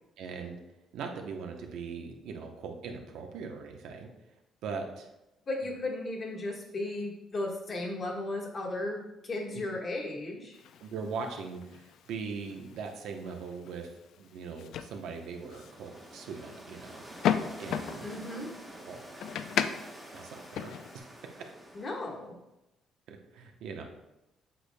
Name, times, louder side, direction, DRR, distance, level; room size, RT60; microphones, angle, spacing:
voice 1, 0.2-0.6 0.9-4.1 4.6-5.1 9.5-9.6 10.8-13.9 14.2-18.1 18.8-19.0 20.1-21.1 23.1-23.8, right 5 dB, 80° right, 3 dB, 0.8 m, -40 dB
voice 2, 5.5-10.6 18.0-18.5 21.7-22.4, left 2 dB, 35° left, -2 dB, 1.4 m, -35 dB
sound 1, 10.5-21.0, left 9 dB, 70° left, 0.4 m, -37 dB
sound 2, 15.1-22.2, right 1 dB, 5° right, 1.2 m, -48 dB
7.8 x 6.4 x 2.2 m, 0.96 s
cardioid pair, 130°, 0 cm